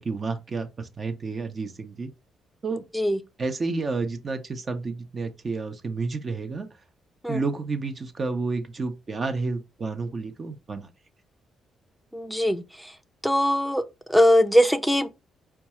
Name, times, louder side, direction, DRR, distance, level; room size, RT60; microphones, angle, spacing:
voice 1, 0.0-2.1 2.6-2.8 3.4-6.7 7.3-10.9, right 3 dB, 40° right, 0.7 m, -30 dB
voice 2, 12.1-12.6 13.2-13.8 14.1-15.1, equal, ahead, 0.5 m, -20 dB
4.5 x 2.3 x 2.9 m
cardioid pair, 90°, 0 cm